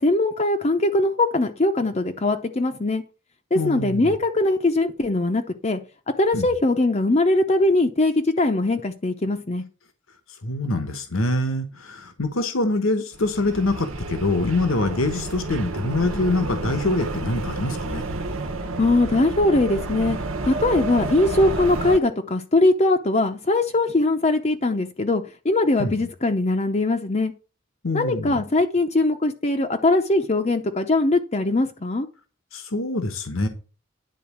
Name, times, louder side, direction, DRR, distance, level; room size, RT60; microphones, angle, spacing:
voice 1, 0.0-3.0 3.5-5.8 6.2-9.6 18.8-20.2 20.4-27.3 27.9-32.1, left 2 dB, 30° left, 4 dB, 0.7 m, -21 dB
voice 2, 3.5-4.1 6.3-6.5 10.4-18.0 25.8-26.0 27.8-28.4 32.5-33.5, left 2 dB, 80° left, 8 dB, 1.2 m, -25 dB
sound 1, 13.1-22.0, right 2 dB, 85° right, 1.3 m, -30 dB
10.5 x 4.0 x 7.2 m, 0.34 s
head